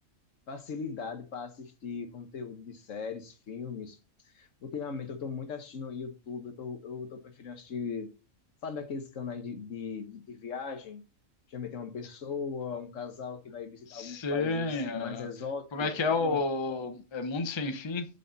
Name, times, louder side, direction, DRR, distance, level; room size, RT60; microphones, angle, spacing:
voice 1, 0.5-4.0 4.3-8.1 8.6-11.0 11.5-15.9 16.2-16.4, left 5 dB, 65° left, 1.3 m, -38 dB
voice 2, 13.9-15.3 15.7-18.1, left 3 dB, 25° left, 0.7 m, -31 dB
6.4 x 5.3 x 3.9 m
omnidirectional pair, 1.5 m